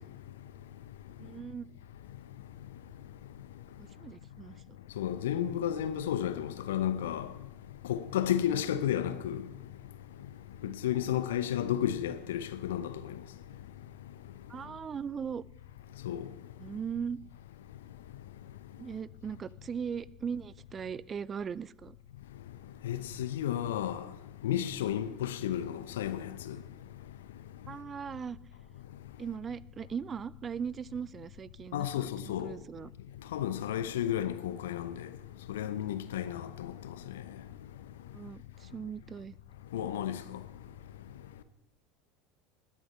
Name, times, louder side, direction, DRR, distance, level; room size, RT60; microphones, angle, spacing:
voice 1, 1.2-1.7 3.8-4.8 10.6-10.7 14.5-15.4 16.6-17.2 18.8-22.0 27.7-28.4 29.2-32.9 38.1-39.4, right 7 dB, 30° right, 0.4 m, -39 dB
voice 2, 5.0-7.3 7.9-9.4 10.6-12.9 16.0-16.2 22.8-24.0 24.4-26.2 26.5-26.6 31.7-32.5 33.3-35.0 35.5-36.7 39.7-40.2, left 10 dB, 70° left, 0.8 m, -32 dB
20.0 x 7.4 x 5.6 m
figure-of-eight pair, 75°, 0 cm